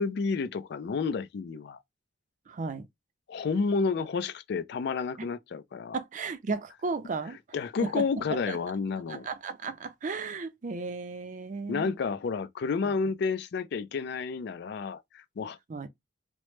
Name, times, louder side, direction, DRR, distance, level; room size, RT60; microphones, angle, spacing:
voice 1, 0.0-1.8 3.3-6.0 7.5-9.3 11.7-15.6, left 5 dB, 60° left, 0.4 m, -30 dB
voice 2, 2.5-2.9 5.2-5.3 5.9-7.4 7.8-8.6 9.1-11.9 15.7-15.9, right 4 dB, 45° right, 0.4 m, -34 dB
3.0 x 2.0 x 3.1 m
head